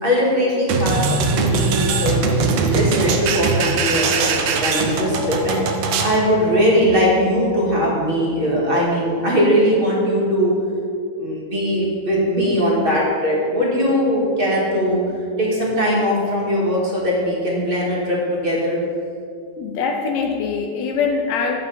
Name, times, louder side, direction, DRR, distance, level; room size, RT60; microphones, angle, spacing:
voice 1, 0.0-1.0 1.3-2.2 2.6-4.3 4.6-5.6 6.0-10.5 11.2-15.0 15.4-18.8, equal, 25° right, -4 dB, 1.5 m, -20 dB
sound 1, 0.7-6.2, right 4 dB, 70° right, 1.8 m, -21 dB
sound 2, 6.7-9.2, equal, 40° left, 1.8 m, -37 dB
voice 2, 19.6-21.6, left 5 dB, 75° left, 3 dB, 1.8 m, -23 dB
11.5 x 7.7 x 4.2 m, 2.4 s
omnidirectional pair, 3.5 m